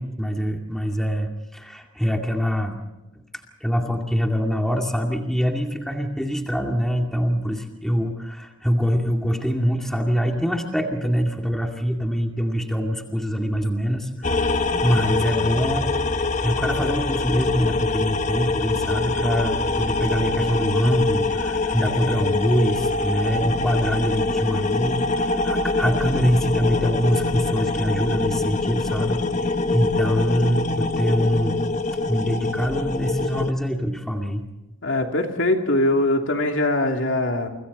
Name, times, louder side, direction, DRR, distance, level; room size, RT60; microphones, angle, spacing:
voice 1, 0.0-2.8 3.6-16.0 16.4-31.6 32.1-34.5, equal, ahead, 2 dB, 2.3 m, -24 dB
sound 1, 14.2-33.5, left 3 dB, 35° left, 0.9 m, -24 dB
voice 2, 34.8-37.5, left 1 dB, 65° left, 3 dB, 2.9 m, -22 dB
30.0 x 25.5 x 4.2 m, 1.0 s
head